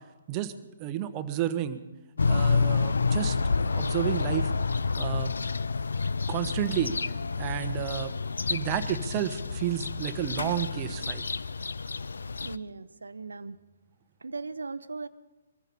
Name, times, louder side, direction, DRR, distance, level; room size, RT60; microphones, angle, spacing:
voice 1, 0.8-1.8 2.3-4.5 5.0-5.3 6.3-6.9 7.4-8.1 8.5-11.2, right 11 dB, 30° right, 10 dB, 1.2 m, -31 dB
sound 1, 2.2-12.6, left 4 dB, 75° left, 0.5 m, -29 dB
voice 2, 12.4-13.6 14.2-15.1, right 4 dB, 75° right, 14 dB, 0.9 m, -38 dB
23.0 x 14.5 x 4.2 m, 1.1 s
figure-of-eight pair, 130°, 0 cm